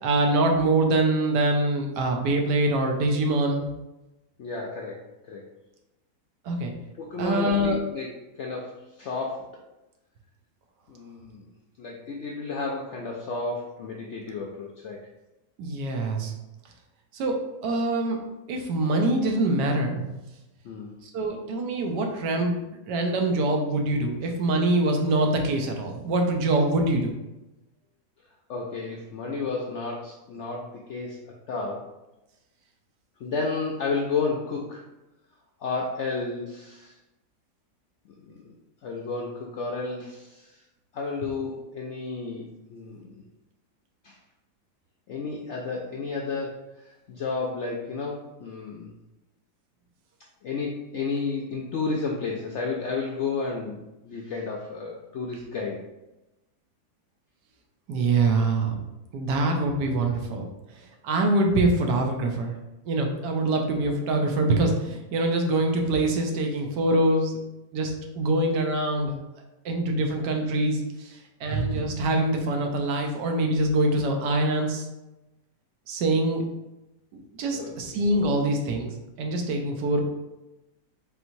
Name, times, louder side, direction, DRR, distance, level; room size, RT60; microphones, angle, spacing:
voice 1, 0.0-3.6 6.4-6.7 7.2-7.8 15.6-16.3 17.1-17.4 17.6-18.2 18.5-20.1 21.0-22.6 22.9-27.1 57.9-58.7 59.1-60.5 61.0-62.5 62.9-67.4 67.7-69.2 69.6-74.8 75.9-76.4 77.1-78.9 79.2-80.0, right 2 dB, 80° right, 3 dB, 1.3 m, -24 dB
voice 2, 4.4-5.5 7.0-9.5 10.9-11.5 11.8-15.0 20.6-21.0 28.5-31.9 33.2-34.8 35.6-37.0 38.1-38.5 38.8-40.6 40.9-43.3 44.0-44.2 45.1-48.9 50.4-55.8 77.5-78.0, left 4 dB, 75° left, -1 dB, 0.6 m, -32 dB
4.6 x 3.8 x 2.6 m, 0.98 s
omnidirectional pair, 1.8 m